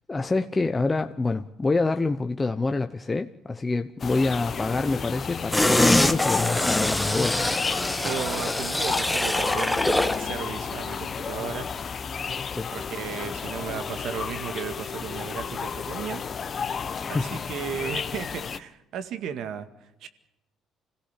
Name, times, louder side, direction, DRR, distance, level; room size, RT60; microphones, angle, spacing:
voice 1, 0.1-7.4 12.5-12.7 17.0-17.4, left 3 dB, 20° left, 1.0 m, -26 dB
sound 1, 4.0-18.6, left 6 dB, 45° left, 1.3 m, -32 dB
sound 2, 5.5-10.3 10.6-10.7, left 1 dB, 5° left, 1.4 m, -24 dB
voice 2, 7.9-11.7 12.7-16.2 17.1-19.7 20.0-20.1, right 8 dB, 70° right, 2.0 m, -35 dB
26.0 x 16.5 x 8.4 m
supercardioid pair, 80°, 0 cm